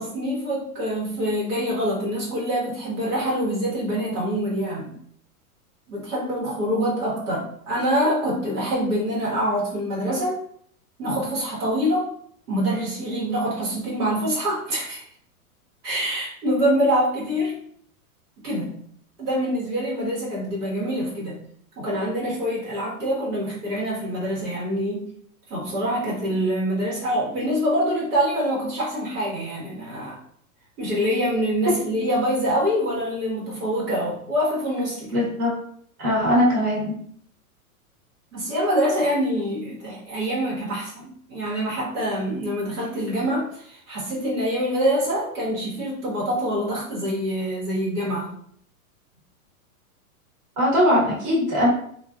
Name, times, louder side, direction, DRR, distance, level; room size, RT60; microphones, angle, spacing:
voice 1, 0.0-4.9 5.9-10.4 11.0-12.1 12.5-15.0 15.8-17.6 18.4-18.7 19.2-21.4 21.8-25.1 25.5-30.2 30.8-35.3 38.3-48.3, equal, 80° right, -5 dB, 1.3 m, -25 dB
voice 2, 35.1-35.5 36.0-37.0 50.6-51.7, equal, 35° right, -7 dB, 1.2 m, -20 dB
2.4 x 2.3 x 2.3 m, 0.64 s
hypercardioid pair, 130°, 45 cm